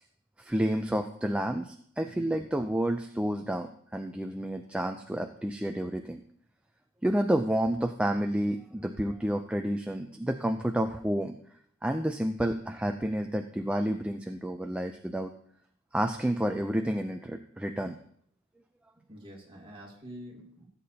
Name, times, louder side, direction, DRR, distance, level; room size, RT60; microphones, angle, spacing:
voice 1, 0.4-6.2 7.0-11.3 11.8-15.3 15.9-18.0, right 1 dB, 5° right, 4 dB, 0.4 m, -30 dB
voice 2, 19.1-20.6, equal, 25° right, -3 dB, 2.4 m, -47 dB
17.0 x 8.4 x 2.8 m, 0.64 s
head